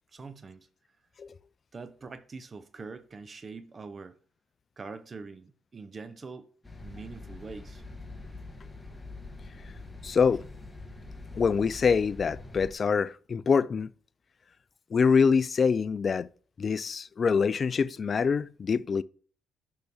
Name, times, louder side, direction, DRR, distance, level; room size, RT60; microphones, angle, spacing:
voice 1, 0.1-0.7 1.7-4.2 4.8-6.5 6.8-7.8, right 4 dB, 35° right, 0.6 m, -43 dB
sound 1, 6.6-12.7, left 2 dB, 15° left, 1.3 m, -44 dB
voice 2, 10.0-10.4 11.3-13.9 14.9-16.3 16.6-19.0, left 5 dB, 45° left, 0.4 m, -25 dB
6.6 x 5.7 x 3.5 m
cardioid pair, 80°, 0 cm